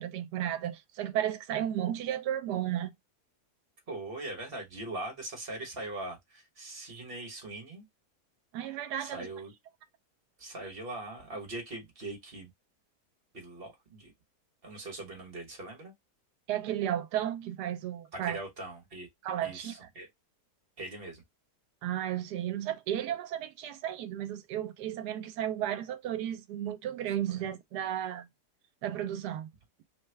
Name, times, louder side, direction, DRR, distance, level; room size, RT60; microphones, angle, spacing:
voice 1, 0.0-2.9 8.5-9.3 16.5-18.4 19.2-19.9 21.8-28.3 28.8-29.5, right 11 dB, 75° right, 1.1 m, -33 dB
voice 2, 3.9-7.8 9.0-9.5 10.4-12.5 13.3-14.1 14.6-15.9 18.1-19.1 19.4-20.1 20.8-21.2 27.3-27.4, right 2 dB, 40° right, 1.2 m, -41 dB
3.4 x 2.2 x 3.2 m
omnidirectional pair, 1.8 m